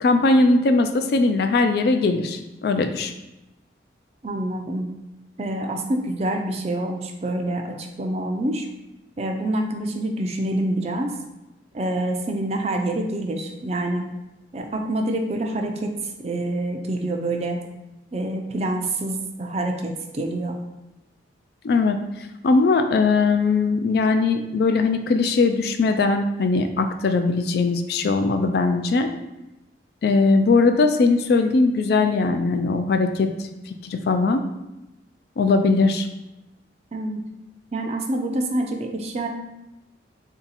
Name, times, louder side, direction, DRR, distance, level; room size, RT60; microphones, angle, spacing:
voice 1, 0.0-3.1 21.6-22.0 22.4-29.1 30.0-34.4 35.4-36.1, left 3 dB, 60° left, 7 dB, 0.3 m, -20 dB
voice 2, 4.2-4.9 5.4-8.7 9.2-11.1 11.7-14.1 14.5-15.9 16.2-17.6 18.1-20.6 36.9-37.2 37.7-39.3, right 1 dB, 35° right, 4 dB, 0.4 m, -26 dB
3.4 x 2.8 x 3.9 m, 0.96 s
head